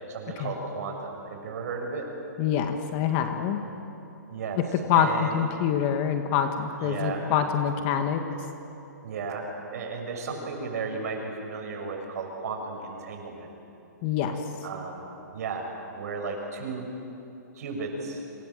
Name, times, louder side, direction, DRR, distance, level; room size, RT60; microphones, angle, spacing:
voice 1, 0.1-2.1 4.3-4.6 4.9-5.4 6.8-7.2 9.0-9.4 9.7-13.5 14.6-15.0 15.3-15.7 15.9-16.9 17.5-18.2, right 4 dB, 60° right, 2 dB, 7.6 m, -34 dB
voice 2, 2.4-3.6 4.6-8.2 14.0-14.4, left 8 dB, 35° left, 6 dB, 1.9 m, -25 dB
29.0 x 26.5 x 7.8 m, 2.8 s
hypercardioid pair, 150°, 10 cm